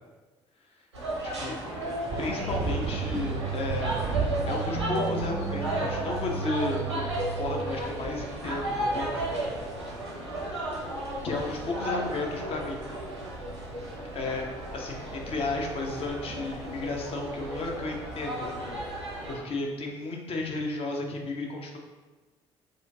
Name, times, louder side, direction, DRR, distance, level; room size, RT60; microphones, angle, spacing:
sound 1, 0.9-19.3, right 1 dB, 90° right, 0.8 m, -34 dB
voice 1, 1.2-1.6 2.2-4.0 4.5-9.3 11.2-12.9 14.1-14.4 14.7-21.8, left 3 dB, 45° left, 1 dB, 0.8 m, -33 dB
sound 2, 2.1-12.0, right 4 dB, 40° right, 0.5 m, -37 dB
sound 3, 2.4-7.6, right 6 dB, 80° left, 0.6 m, -35 dB
6.4 x 2.5 x 2.7 m, 1.3 s
figure-of-eight pair, 50°, 14 cm